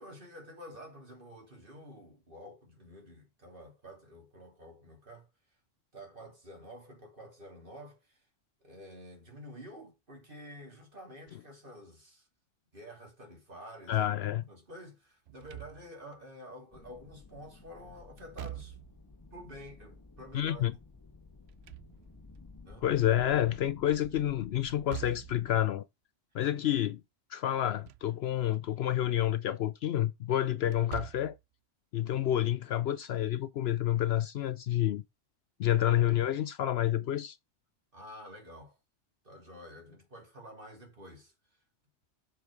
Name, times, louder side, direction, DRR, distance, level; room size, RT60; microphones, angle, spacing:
voice 1, 0.0-5.3 5.9-8.2 8.6-12.3 12.7-18.8 19.3-20.7 22.6-22.9 26.7-26.8 37.9-38.8 39.2-41.3, equal, 45° right, 3.1 m, -49 dB
voice 2, 13.9-14.4 20.3-20.7 22.8-25.8 26.3-27.0 27.3-31.4 31.9-35.0 35.6-37.4, left 12 dB, 65° left, 0.7 m, -29 dB
Slam / Thump thud, 15.3-16.2 18.2-19.1 21.3-22.4 24.7-25.5 27.6-28.1 28.5-28.6 30.6-31.4, right 16 dB, 65° right, 0.8 m, -44 dB
sound 1, 16.7-25.7, left 4 dB, 20° left, 0.9 m, -54 dB
7.0 x 4.5 x 4.7 m
omnidirectional pair, 1.2 m